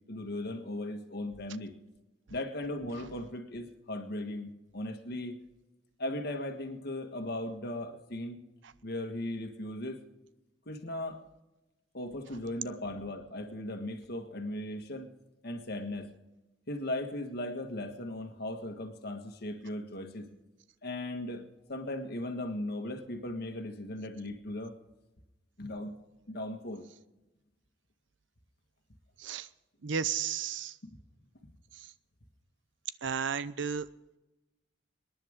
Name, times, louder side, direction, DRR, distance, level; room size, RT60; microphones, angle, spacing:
voice 1, 0.1-1.7 2.3-5.4 6.0-8.4 8.8-10.0 10.6-11.2 11.9-15.1 15.4-16.1 16.7-20.3 20.8-24.7 25.6-25.9 26.3-26.8 30.8-30.9, left 1 dB, 60° left, 6 dB, 1.7 m, -37 dB
voice 2, 29.8-30.7 33.0-33.9, right 7 dB, 70° right, 16 dB, 0.6 m, -33 dB
26.0 x 10.5 x 3.7 m, 1.0 s
head